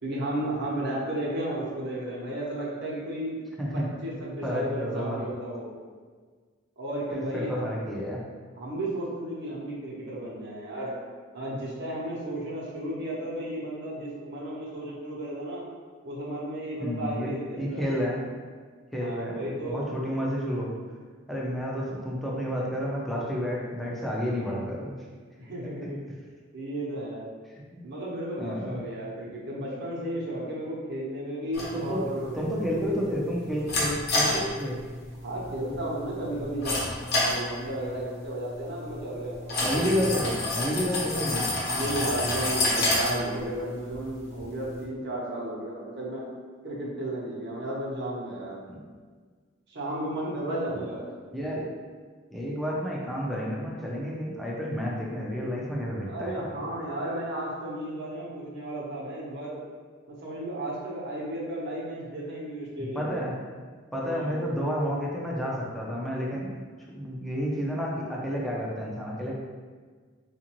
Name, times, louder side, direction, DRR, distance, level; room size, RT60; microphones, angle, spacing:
voice 1, 0.0-3.4 3.7-5.7 6.8-7.6 8.6-10.9 11.3-15.6 16.0-17.9 19.0-19.9 25.4-26.0 26.5-27.3 27.8-33.0 35.2-36.9 37.2-39.8 41.6-46.2 46.6-48.6 49.7-51.1 56.1-59.6 60.1-63.2 64.0-64.4, right 1 dB, 60° right, -6 dB, 1.0 m, -34 dB
voice 2, 3.6-3.9 4.4-5.2 7.1-8.3 16.8-18.2 18.9-20.8 21.3-24.9 27.7-27.8 28.4-28.8 31.7-32.0 32.3-34.8 39.6-41.6 48.7-48.8 51.3-51.7 52.3-56.6 62.8-63.4 63.9-66.5 66.9-69.4, equal, ahead, -5 dB, 0.5 m, -30 dB
sound 1, 31.5-44.8, left 2 dB, 55° left, 0.9 m, -30 dB
3.9 x 2.5 x 3.0 m, 1.5 s
head